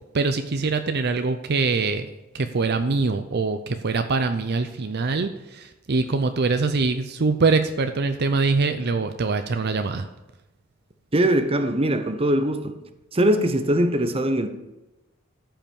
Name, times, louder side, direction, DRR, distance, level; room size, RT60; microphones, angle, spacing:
voice 1, 0.1-2.1 2.3-10.1, right 4 dB, 55° right, 8 dB, 0.6 m, -23 dB
voice 2, 11.1-12.8 13.1-14.5, right 1 dB, 30° right, 8 dB, 0.9 m, -21 dB
13.5 x 5.8 x 7.0 m, 1.0 s
head